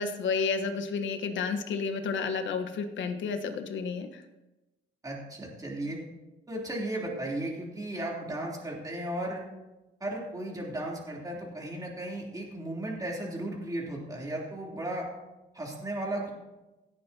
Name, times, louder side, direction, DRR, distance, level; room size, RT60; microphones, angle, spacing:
voice 1, 0.0-4.2, left 5 dB, 70° left, 6 dB, 1.3 m, -31 dB
voice 2, 5.0-6.0 6.5-9.4 10.0-15.1 15.5-16.3, right 1 dB, 20° right, -3 dB, 3.3 m, -35 dB
17.0 x 9.3 x 2.9 m, 1.0 s
cardioid pair, 90°, 20 cm